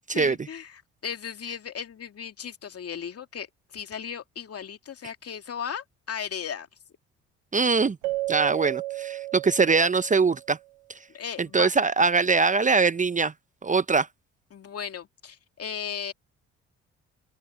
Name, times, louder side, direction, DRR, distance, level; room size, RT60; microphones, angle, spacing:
voice 1, 0.1-6.7 11.1-11.7 14.5-16.1, left 8 dB, 50° left, 2.6 m, -36 dB
voice 2, 7.5-8.0 8.3-10.6 11.4-13.3 13.6-14.1, right 4 dB, 25° right, 0.8 m, -22 dB
Keyboard (musical), 8.0-10.5, right 18 dB, 90° right, 1.4 m, -32 dB
open air
hypercardioid pair, 55°, 32 cm